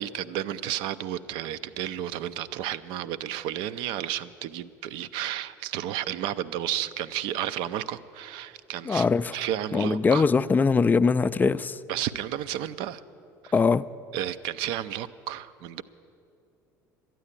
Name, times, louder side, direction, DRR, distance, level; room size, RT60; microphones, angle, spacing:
voice 1, 0.0-9.1 9.3-10.3 11.9-13.0 13.4-13.5 14.1-15.8, right 11 dB, 55° right, 14 dB, 0.5 m, -32 dB
voice 2, 8.9-9.4 9.7-11.8 13.5-13.8, left 5 dB, 20° left, 15 dB, 0.4 m, -22 dB
13.0 x 9.1 x 9.7 m, 2.6 s
figure-of-eight pair, 65°, 10 cm